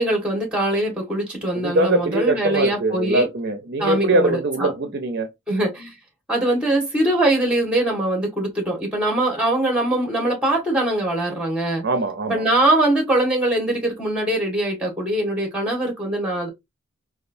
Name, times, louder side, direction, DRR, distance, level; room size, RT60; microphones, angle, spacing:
voice 1, 0.0-3.3 3.8-4.7 5.5-5.9 6.3-11.8 12.3-16.5, right 1 dB, 5° right, 1.5 m, -22 dB
voice 2, 1.6-5.3 11.8-12.4, right 2 dB, 55° right, 0.6 m, -22 dB
4.4 x 2.4 x 2.6 m
head